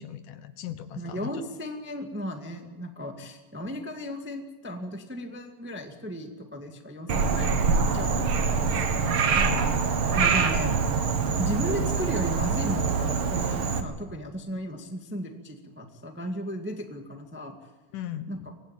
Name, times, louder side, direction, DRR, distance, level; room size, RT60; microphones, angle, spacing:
voice 1, 0.0-1.3 9.4-9.6 11.2-11.3 17.9-18.3, left 11 dB, 75° left, 10 dB, 2.8 m, -37 dB
voice 2, 0.9-9.4 10.1-10.8 11.4-17.5 18.3-18.5, equal, 5° right, 4 dB, 1.0 m, -35 dB
Frog, 7.1-13.8, right 5 dB, 50° right, 2.0 m, -25 dB
25.0 x 19.0 x 9.0 m, 1.2 s
omnidirectional pair, 3.8 m